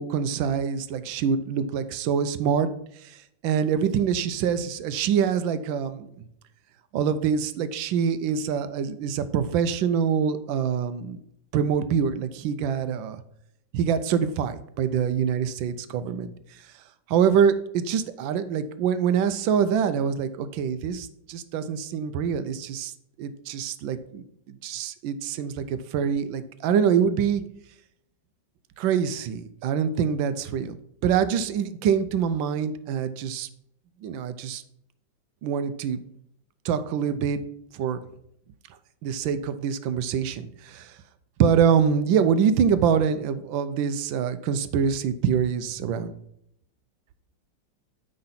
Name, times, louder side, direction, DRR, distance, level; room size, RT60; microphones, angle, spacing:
voice 1, 0.0-2.7 3.0-3.2 3.4-6.1 6.9-11.2 11.5-13.2 13.7-16.3 17.1-22.9 23.2-24.2 24.6-27.4 28.8-30.7 31.0-33.5 34.0-34.6 35.4-36.0 36.6-37.4 37.7-38.0 39.0-40.9 41.4-46.1, right 7 dB, 85° right, 12 dB, 1.4 m, -25 dB
9.4 x 3.9 x 5.6 m, 0.74 s
omnidirectional pair, 2.0 m